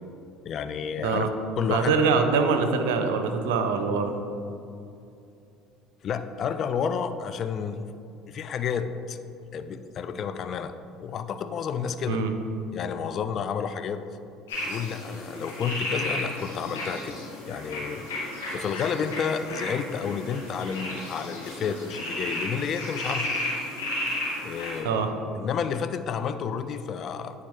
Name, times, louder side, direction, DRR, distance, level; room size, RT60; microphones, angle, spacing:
voice 1, 0.5-1.3 1.6-2.0 6.0-7.8 8.3-9.2 9.5-10.7 11.0-12.2 12.7-14.0 14.6-17.1 17.4-23.3 24.4-25.0 25.3-27.4, left 7 dB, 50° left, 10 dB, 0.3 m, -30 dB
voice 2, 1.0-1.3 1.7-4.1 12.1-12.3 24.8-25.1, right 5 dB, 80° right, 6 dB, 0.5 m, -24 dB
sound 1, 14.5-24.8, left 1 dB, 90° left, 1.5 m, -33 dB
9.4 x 3.7 x 3.4 m, 2.6 s
hypercardioid pair, 75°, 0 cm